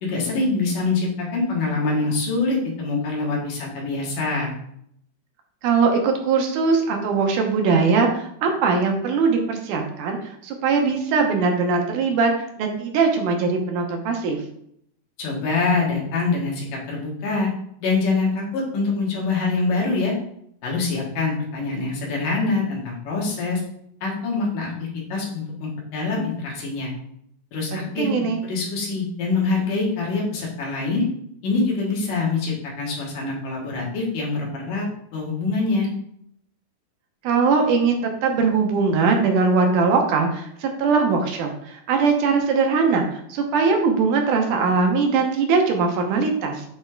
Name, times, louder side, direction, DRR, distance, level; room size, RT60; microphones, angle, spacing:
voice 1, 0.0-4.6 15.2-17.5 17.8-20.2 20.6-23.6 24.0-24.7 25.1-26.9 27.5-28.1 28.4-31.0 31.4-34.9 35.1-35.9, left 3 dB, 85° left, -3 dB, 3.3 m, -24 dB
voice 2, 5.6-12.3 12.6-14.4 27.7-28.4 37.2-46.6, right 4 dB, 85° right, 3 dB, 2.4 m, -21 dB
9.3 x 3.3 x 3.6 m, 0.71 s
omnidirectional pair, 3.6 m